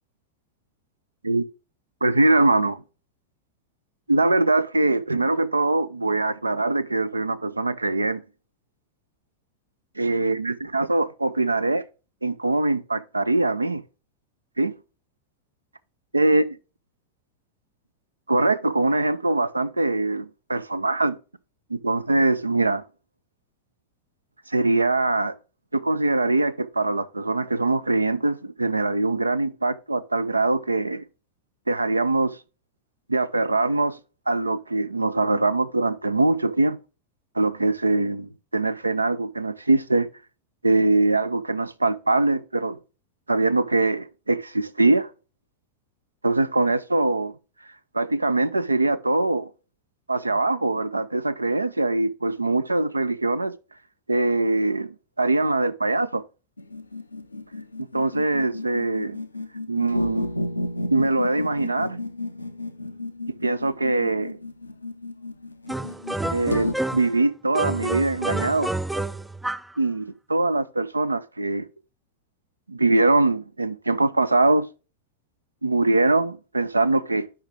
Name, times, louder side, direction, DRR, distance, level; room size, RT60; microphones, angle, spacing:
voice 1, 2.0-2.8 4.1-8.2 10.0-11.8 12.2-13.8 14.6-14.7 16.1-16.5 18.3-21.1 21.7-22.8 24.5-25.4 25.7-31.0 31.7-32.4 33.1-34.0 34.3-36.8 37.3-40.1 40.6-42.8 43.3-45.1 46.2-47.3 47.9-49.5 50.1-53.5 54.1-56.2 57.8-59.2 59.7-60.3 60.9-62.0 63.4-64.4 66.3-68.8 69.8-71.7 72.7-74.7 75.6-77.3, right 2 dB, 80° right, 0.5 m, -22 dB
sound 1, 56.6-66.7, left 2 dB, 80° left, 0.6 m, -33 dB
sound 2, 65.7-67.2 67.5-69.8, right 2 dB, 5° right, 0.3 m, -29 dB
8.7 x 5.7 x 3.5 m
figure-of-eight pair, 90°, 0 cm